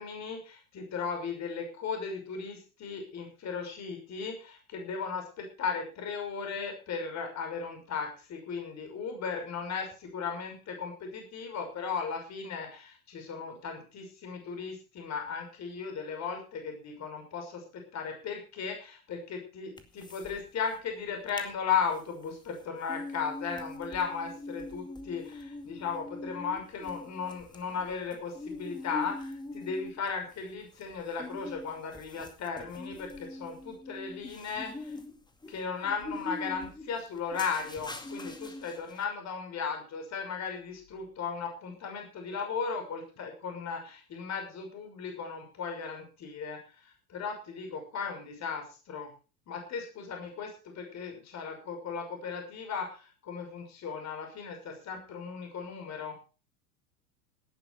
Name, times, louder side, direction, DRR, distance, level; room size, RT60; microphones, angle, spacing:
voice 1, 0.0-34.9 35.5-49.1 49.5-56.2, left 6 dB, 35° left, 4 dB, 6.1 m, -36 dB
sound 1, 19.8-20.4 20.7-20.8 21.1-21.5 21.9-39.0, left 2 dB, 10° left, 2.2 m, -43 dB
18.0 x 10.5 x 4.9 m, 0.36 s
hypercardioid pair, 90°, 46 cm